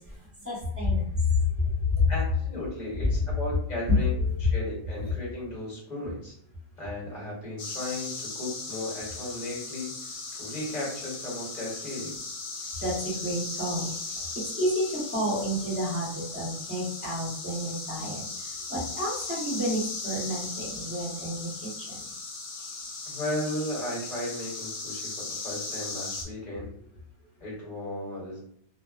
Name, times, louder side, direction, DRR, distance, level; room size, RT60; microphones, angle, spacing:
voice 1, 0.0-2.1 4.1-4.5 5.0-5.1 12.5-22.1 27.2-27.3, left 2 dB, 10° right, -7 dB, 0.8 m, -30 dB
voice 2, 2.1-6.3 6.8-12.2 23.1-26.7 27.4-28.4, left 1 dB, 35° left, -5 dB, 1.1 m, -35 dB
sound 1, 7.6-26.3, left 3 dB, 80° left, 1.0 m, -37 dB
2.5 x 2.1 x 2.3 m, 0.65 s
omnidirectional pair, 1.5 m